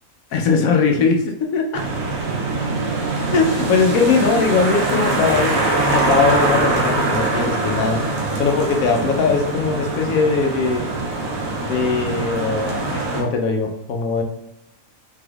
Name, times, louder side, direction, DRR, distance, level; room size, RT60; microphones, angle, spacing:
voice 1, 0.3-1.7 3.2-8.0 8.4-10.9 11.6-14.2, left 4 dB, 90° left, 3 dB, 1.1 m, -20 dB
sound 1, 1.7-13.2, right 2 dB, 90° right, 1.2 m, -23 dB
3.4 x 3.4 x 2.3 m, 0.84 s
omnidirectional pair, 1.4 m